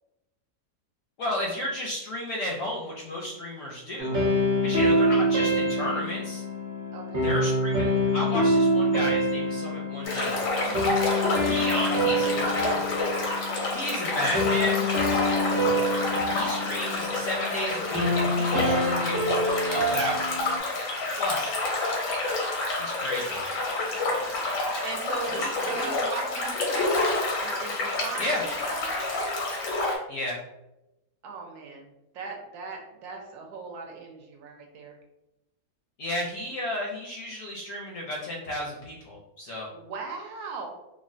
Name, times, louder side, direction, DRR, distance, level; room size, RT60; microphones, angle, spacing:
voice 1, 1.2-4.2 4.6-6.4 7.2-10.4 11.4-12.9 13.7-14.9 16.3-20.5 21.2-21.6 22.8-23.4 25.3-25.7 28.2-28.4 30.1-30.4 36.0-39.7, left 1 dB, 70° left, -3 dB, 0.8 m, -33 dB
sound 1, 4.0-20.6, equal, 45° right, 0.8 m, -26 dB
voice 2, 6.9-7.3 10.6-10.9 15.7-16.0 20.6-21.0 24.8-26.9 27.4-29.2 31.2-31.9 32.1-35.0 39.7-40.7, right 4 dB, 75° right, 1 dB, 1.0 m, -39 dB
sound 2, 10.1-30.0, left 2 dB, 90° left, 1.4 m, -28 dB
3.1 x 2.1 x 2.5 m, 0.94 s
omnidirectional pair, 1.8 m